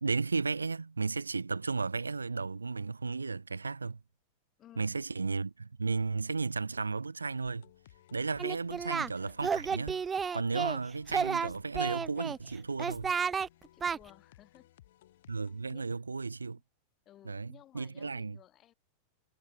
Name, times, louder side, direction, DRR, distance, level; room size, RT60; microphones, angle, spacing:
voice 1, 0.0-4.0 4.8-7.6 8.1-10.0 10.3-13.1 15.3-16.6 17.2-18.4, right 4 dB, 80° right, 1.0 m, -34 dB
voice 2, 4.6-5.0 13.7-14.7 15.7-15.8 17.1-18.7, left 12 dB, 30° left, 4.2 m, -57 dB
sound 1, 7.4-15.8, left 13 dB, 55° left, 4.5 m, -60 dB
Singing, 8.4-9.1 9.4-10.8 11.1-12.4 12.8-13.5 13.8-14.0, right 6 dB, 20° right, 0.6 m, -32 dB
figure-of-eight pair, 90°, 0 cm